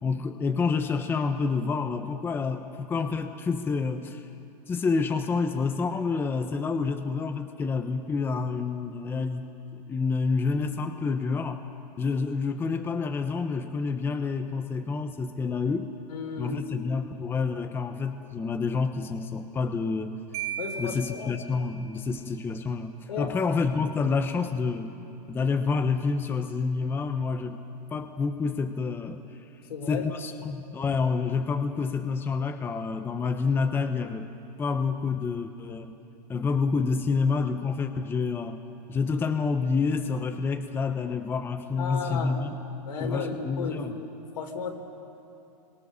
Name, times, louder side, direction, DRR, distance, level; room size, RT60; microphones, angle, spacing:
voice 1, 0.0-4.2 4.7-11.6 12.0-15.9 16.4-20.2 20.8-24.9 25.3-27.6 27.9-29.2 29.9-34.3 34.6-35.9 36.3-38.6 38.9-42.6 43.0-43.9, left 4 dB, 10° left, 7 dB, 0.8 m, -28 dB
voice 2, 16.1-16.6 20.6-21.4 23.1-23.5 29.7-30.1 30.4-30.5 41.8-42.6 42.8-44.7, left 5 dB, 80° left, 2 dB, 4.4 m, -34 dB
Marimba xylophone, 20.3-22.1, right 8 dB, 35° right, 2.3 m, -37 dB
27.5 x 23.5 x 6.7 m, 2.7 s
hypercardioid pair, 150°, 21 cm